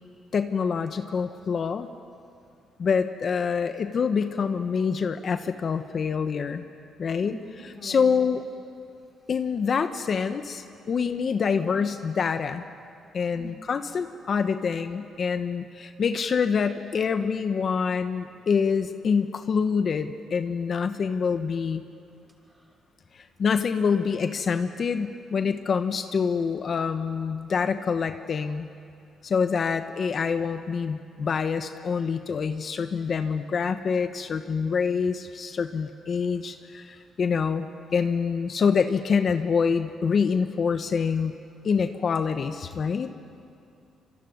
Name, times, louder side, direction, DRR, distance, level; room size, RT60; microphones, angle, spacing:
voice 1, 0.3-1.9 2.8-6.6 7.0-7.3 7.6-8.4 9.3-12.6 13.1-21.8 23.1-28.7 29.2-41.3 41.6-43.1, left 6 dB, 50° left, 8 dB, 1.1 m, -26 dB
voice 2, 7.1-8.1 13.3-13.5, right 1 dB, 20° right, 1 dB, 5.9 m, -42 dB
26.0 x 23.0 x 9.5 m, 2.5 s
cardioid pair, 90°, 0 cm